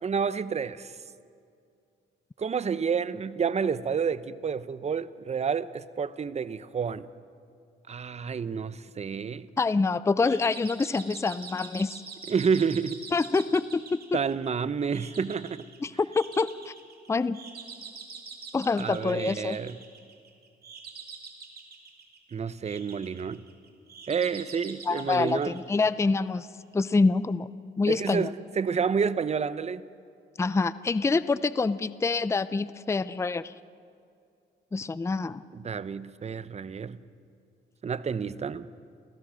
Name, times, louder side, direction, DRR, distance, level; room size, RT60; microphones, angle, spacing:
voice 1, 0.0-0.9 2.4-7.1 7.9-9.5 12.3-13.0 14.1-15.6 18.8-19.7 22.3-23.4 24.1-25.6 27.9-29.8 35.5-37.0 37.8-38.7, right 6 dB, 35° right, 15 dB, 0.8 m, -29 dB
voice 2, 9.6-12.0 13.1-14.0 15.8-16.7 17.1-17.4 18.5-19.6 24.9-26.5 26.7-27.5 27.8-28.3 30.4-33.5 34.7-35.4, left 4 dB, 15° left, 16 dB, 0.5 m, -26 dB
sound 1, 10.2-26.3, right 5 dB, 50° right, 3.1 m, -45 dB
29.0 x 16.0 x 6.4 m, 2.4 s
cardioid pair, 90°, 20 cm